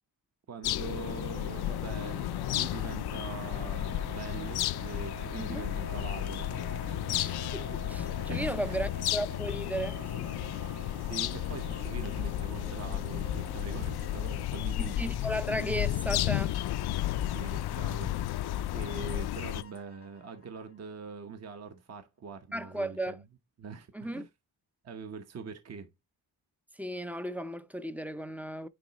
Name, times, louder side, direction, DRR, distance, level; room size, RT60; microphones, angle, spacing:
voice 1, 0.5-6.5 6.9-7.1 8.3-8.8 10.6-15.0 17.1-18.2 18.7-23.2 23.6-24.3 24.8-25.9, right 5 dB, 40° right, 0.9 m, -43 dB
sound 1, 0.6-19.6, left 13 dB, 75° left, 0.5 m, -33 dB
sound 2, 1.3-14.5, right 5 dB, 65° right, 1.8 m, -47 dB
voice 2, 7.1-10.3 14.8-16.6 22.5-23.2 23.9-24.3 26.7-28.7, equal, 5° right, 0.4 m, -35 dB
sound 3, 11.3-21.0, left 6 dB, 35° left, 0.6 m, -55 dB
9.8 x 3.8 x 2.9 m
wide cardioid pair, 130°, 38 cm